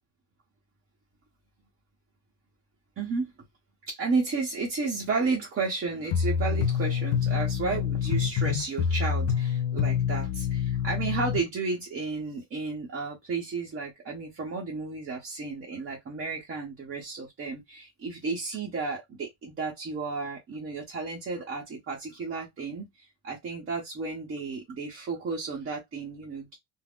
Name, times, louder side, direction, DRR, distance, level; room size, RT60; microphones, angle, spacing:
voice 1, 3.0-3.3 3.9-26.6, right 4 dB, 30° right, 0.8 m, -33 dB
sound 1, 6.1-11.4, left 7 dB, 85° left, 0.6 m, -27 dB
2.5 x 2.0 x 3.4 m
cardioid pair, 145°, 41 cm